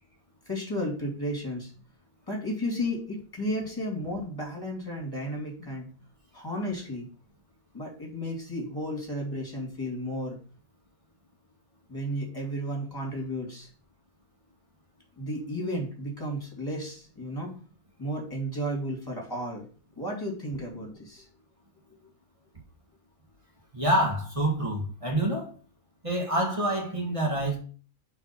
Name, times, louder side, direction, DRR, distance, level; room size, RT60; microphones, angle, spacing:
voice 1, 0.5-1.7 2.3-5.9 6.3-7.1 7.7-10.4 11.9-13.7 15.2-17.5 18.0-19.7 20.0-21.2, equal, 15° left, 2.6 m, -33 dB
voice 2, 23.7-25.5 26.0-27.6, right 1 dB, 25° right, 1.8 m, -27 dB
5.2 x 4.8 x 5.8 m
omnidirectional pair, 1.5 m